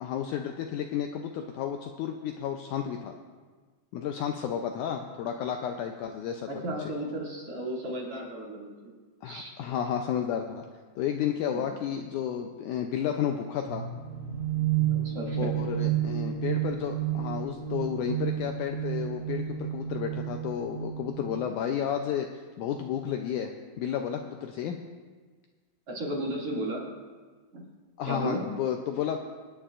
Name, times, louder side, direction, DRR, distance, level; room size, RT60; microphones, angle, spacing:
voice 1, 0.0-3.1 3.9-6.5 9.2-10.7 11.0-13.9 15.4-23.5 23.8-24.8 28.0-29.2, left 9 dB, 80° left, 4 dB, 1.8 m, -32 dB
voice 2, 6.5-8.9 9.2-9.5 11.5-11.6 14.9-15.5 25.9-26.9 27.5-27.7 28.1-28.5, right 1 dB, 45° right, -4 dB, 3.1 m, -34 dB
sound 1, 13.7-21.4, right 11 dB, 25° right, 4.0 m, -31 dB
26.5 x 9.8 x 2.5 m, 1.4 s
omnidirectional pair, 4.0 m